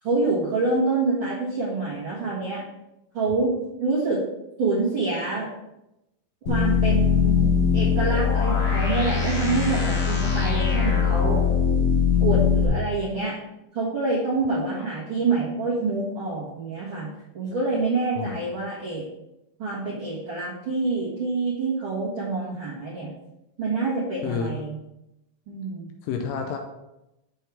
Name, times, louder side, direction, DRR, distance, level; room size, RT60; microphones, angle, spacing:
voice 1, 0.0-2.6 3.1-3.5 3.8-4.2 4.6-5.5 6.5-11.4 12.2-13.4 13.7-17.1 17.3-19.0 19.6-23.1 23.6-24.8 25.5-25.9, right 3 dB, 45° right, -9 dB, 1.9 m, -26 dB
sound 1, 6.5-12.7, left 6 dB, 55° left, 1.6 m, -21 dB
voice 2, 24.2-24.6 26.0-26.6, left 6 dB, 85° left, 3 dB, 2.4 m, -30 dB
7.6 x 6.4 x 3.4 m, 0.90 s
omnidirectional pair, 4.1 m